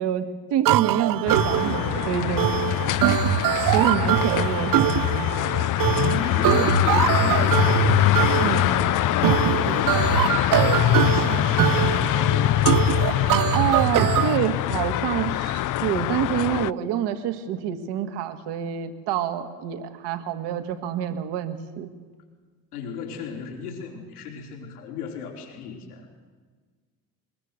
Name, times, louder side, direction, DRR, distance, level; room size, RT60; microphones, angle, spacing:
voice 1, 0.0-2.5 3.7-5.3 8.4-8.7 13.5-21.9, right 10 dB, 65° right, 9 dB, 2.0 m, -27 dB
sound 1, 0.6-14.4, right 14 dB, 50° right, 0.7 m, -23 dB
sound 2, 1.3-16.7, left 15 dB, 45° left, 0.6 m, -23 dB
voice 2, 5.9-7.9 8.4-10.3 11.0-12.0 22.7-26.3, left 5 dB, 90° left, 1 dB, 4.2 m, -34 dB
23.0 x 21.0 x 6.7 m, 1.5 s
hypercardioid pair, 60°, 44 cm